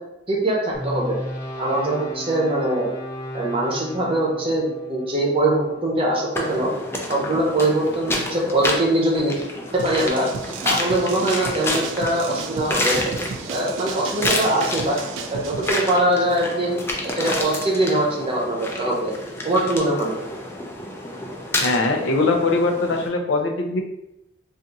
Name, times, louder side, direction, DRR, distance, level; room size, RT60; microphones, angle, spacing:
voice 1, 0.3-1.2 1.6-2.9 3.3-6.7 7.1-9.3 9.8-10.3 10.6-13.0 13.5-15.0 15.3-16.7 17.0-19.1 19.4-20.1, right 1 dB, 30° right, -3 dB, 0.7 m, -22 dB
sound 1, 0.7-7.0, equal, 5° right, 1.1 m, -35 dB
sound 2, 6.3-23.1, left 1 dB, 15° left, 0.3 m, -29 dB
sound 3, 9.8-15.7, right 6 dB, 80° right, 0.3 m, -34 dB
voice 2, 21.5-23.8, left 3 dB, 75° left, 3 dB, 0.5 m, -21 dB
2.5 x 2.4 x 3.9 m, 0.90 s
head